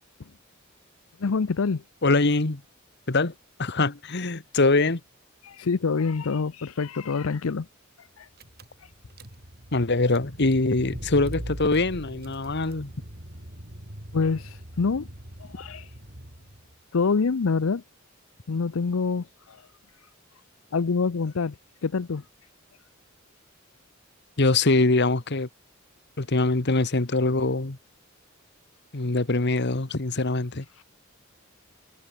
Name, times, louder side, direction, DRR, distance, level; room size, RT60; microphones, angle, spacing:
voice 1, 1.2-1.8 5.4-7.7 8.0-8.3 8.8-8.9 14.1-15.1 15.4-15.9 16.9-17.8 18.5-19.7 20.0-20.1 20.7-22.3, left 4 dB, 85° left, 0.6 m, -26 dB
voice 2, 2.0-2.6 3.1-3.3 3.6-5.0 9.7-12.9 24.4-25.5 26.2-27.8 28.9-30.6, left 2 dB, 55° left, 1.5 m, -23 dB
Car / Engine, 8.1-8.2 8.4-16.7, equal, 50° right, 5.1 m, -41 dB
head